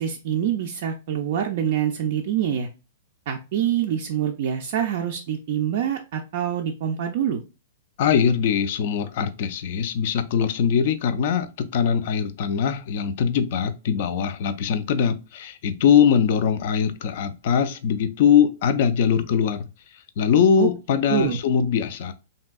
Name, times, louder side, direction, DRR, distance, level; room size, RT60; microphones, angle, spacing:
voice 1, 0.0-2.7 3.3-7.4 20.6-20.7 21.1-21.4, right 9 dB, 45° right, 0.3 m, -25 dB
voice 2, 8.0-19.7 20.2-22.1, left 7 dB, 45° left, 0.3 m, -21 dB
3.3 x 2.6 x 2.2 m
supercardioid pair, 170°, 0 cm